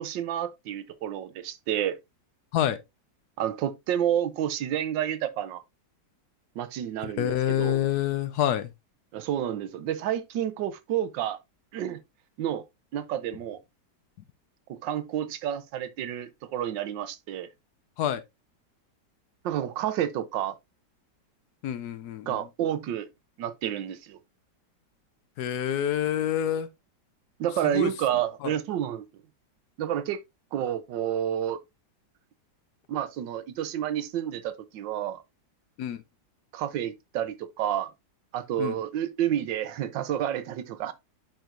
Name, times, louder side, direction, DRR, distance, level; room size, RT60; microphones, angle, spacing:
voice 1, 0.0-2.0 3.4-5.6 6.6-7.8 9.1-11.4 11.7-12.0 12.4-12.6 12.9-13.6 14.7-17.5 19.4-20.5 22.2-23.1 23.4-24.2 27.4-29.0 29.8-30.2 30.5-31.6 32.9-35.2 36.5-37.9 38.3-40.9, right 10 dB, 90° right, 1.4 m, -30 dB
voice 2, 7.0-8.7 18.0-18.2 21.6-22.4 25.4-26.7 27.6-27.9 28.4-28.5 35.8-36.0 38.6-38.8, left 11 dB, 70° left, 1.1 m, -27 dB
10.5 x 4.5 x 2.5 m
omnidirectional pair, 1.9 m